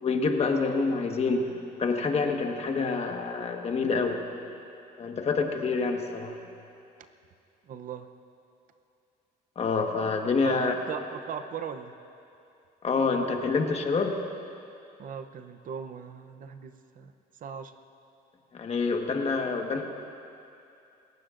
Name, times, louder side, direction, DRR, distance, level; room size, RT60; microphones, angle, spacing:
voice 1, 0.0-1.5 1.8-4.2 5.0-6.4 9.5-10.7 12.8-14.2 18.5-19.8, left 4 dB, 40° left, 3 dB, 1.4 m, -27 dB
voice 2, 7.7-8.1 10.4-11.9 15.0-17.1 17.4-17.7, right 7 dB, 55° right, 9 dB, 0.7 m, -38 dB
28.0 x 15.0 x 2.6 m, 2.7 s
cardioid pair, 110°, 17 cm